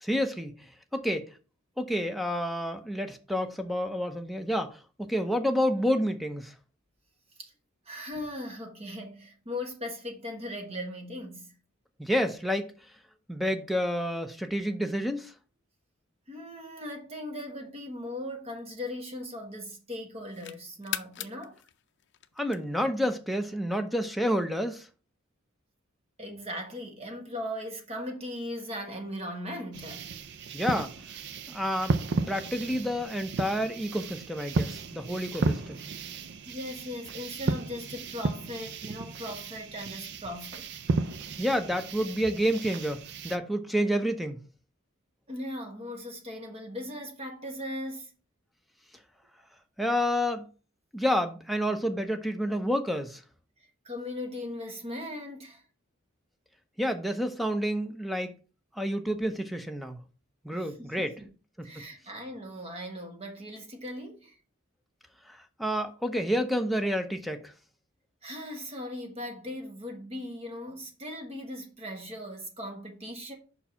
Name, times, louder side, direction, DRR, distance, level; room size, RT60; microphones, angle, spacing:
voice 1, 0.0-0.6 0.9-1.3 1.8-6.5 12.0-12.7 13.3-15.3 22.4-24.9 30.5-30.9 31.5-31.9 32.3-35.8 41.4-44.4 49.8-50.5 50.9-53.2 56.8-58.3 58.7-60.0 60.4-61.1 61.6-61.9 65.3-67.5, equal, ahead, 0.7 m, -29 dB
voice 2, 7.8-11.5 16.3-21.6 26.2-30.1 36.5-40.8 45.3-48.1 53.8-55.6 60.5-61.3 61.6-64.4 68.2-73.3, left 1 dB, 30° right, 1.4 m, -38 dB
sound 1, 17.8-19.6 20.0-23.0, left 12 dB, 55° left, 0.5 m, -41 dB
sound 2, 29.7-43.4, right 3 dB, 55° right, 0.5 m, -34 dB
5.6 x 4.6 x 5.7 m
head